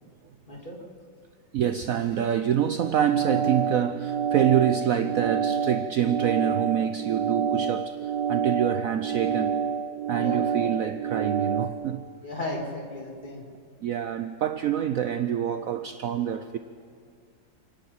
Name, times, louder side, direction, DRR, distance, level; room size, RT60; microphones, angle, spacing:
voice 1, 0.5-0.8 10.1-10.9 12.2-13.5, left 1 dB, 25° left, 0 dB, 3.0 m, -36 dB
voice 2, 1.5-9.6 10.1-12.0 13.8-16.6, right 9 dB, 65° right, 10 dB, 1.0 m, -26 dB
sound 1, 2.8-11.7, right 7 dB, 90° right, 1.6 m, -28 dB
28.5 x 10.5 x 8.7 m, 2.1 s
omnidirectional pair, 1.9 m